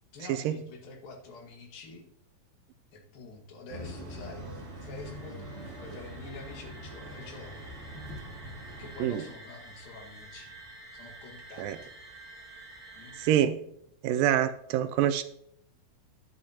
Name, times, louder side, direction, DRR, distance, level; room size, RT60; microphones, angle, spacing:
voice 1, 0.1-2.0 2.9-4.5 4.8-7.7 8.8-10.5 10.9-11.9 12.9-13.2, left 3 dB, 75° left, 1 dB, 3.4 m, -47 dB
sound 1, 3.7-9.0, equal, 45° right, 2.9 m, -43 dB
sound 2, 4.3-13.3, right 2 dB, 5° left, 4.6 m, -50 dB
voice 2, 13.2-13.6 14.0-15.2, right 11 dB, 80° right, 10 dB, 2.1 m, -26 dB
12.5 x 10.5 x 2.9 m, 0.74 s
omnidirectional pair, 4.2 m